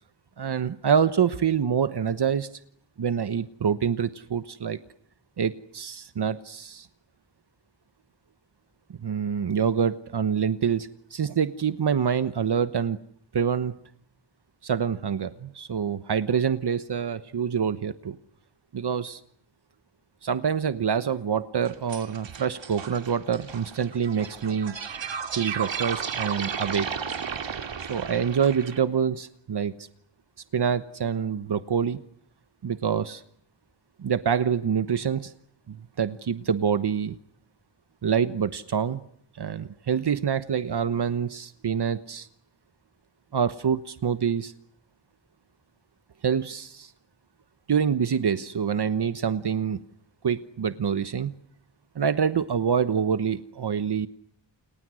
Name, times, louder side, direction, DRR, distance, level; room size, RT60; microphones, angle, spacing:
voice 1, 0.4-2.5 3.0-4.8 5.4-6.9 9.0-13.0 13.3-13.8 14.6-18.2 18.7-19.2 20.2-24.7 25.3-26.9 27.9-29.9 30.5-32.0 32.6-33.2 34.0-35.3 35.7-37.2 38.0-39.0 39.3-42.3 43.3-44.5 46.2-46.9 47.7-49.8 50.2-51.3 51.9-54.1, right 7 dB, 60° right, 12 dB, 1.2 m, -26 dB
sound 1, 21.7-28.8, right 7 dB, 75° right, 2.9 m, -34 dB
29.5 x 29.5 x 6.4 m, 0.68 s
wide cardioid pair, 110°, 45 cm